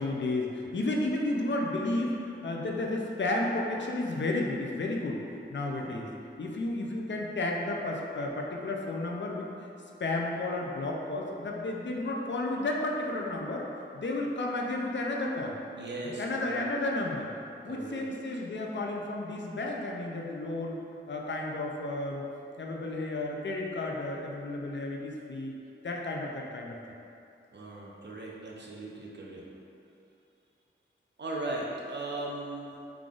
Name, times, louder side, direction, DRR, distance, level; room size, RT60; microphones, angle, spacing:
voice 1, 0.0-5.2 5.5-6.1 6.4-9.5 10.0-13.7 13.9-15.6 16.2-17.3 17.6-20.8 21.1-22.2 22.6-25.6 25.8-26.8, left 2 dB, 65° left, 0 dB, 0.4 m, -32 dB
voice 2, 15.7-16.7 17.6-18.1 27.5-29.4 31.2-32.7, right 2 dB, 60° right, -3 dB, 0.6 m, -38 dB
3.7 x 3.4 x 2.4 m, 2.6 s
wide cardioid pair, 75°, 21 cm